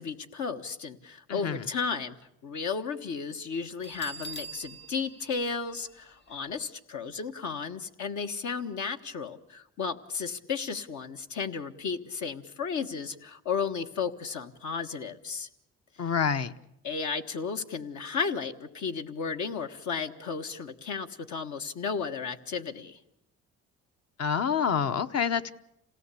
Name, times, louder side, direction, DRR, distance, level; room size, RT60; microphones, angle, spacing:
voice 1, 0.0-2.2 2.4-15.5 16.8-23.0, left 5 dB, 70° left, 7 dB, 1.5 m, -34 dB
voice 2, 1.3-1.7 16.0-16.5 24.2-25.5, left 7 dB, 55° left, 10 dB, 1.0 m, -27 dB
Bell, 3.8-6.5, right 3 dB, 35° left, 1.4 m, -44 dB
27.0 x 17.5 x 8.4 m, 0.86 s
cardioid pair, 90°, 30 cm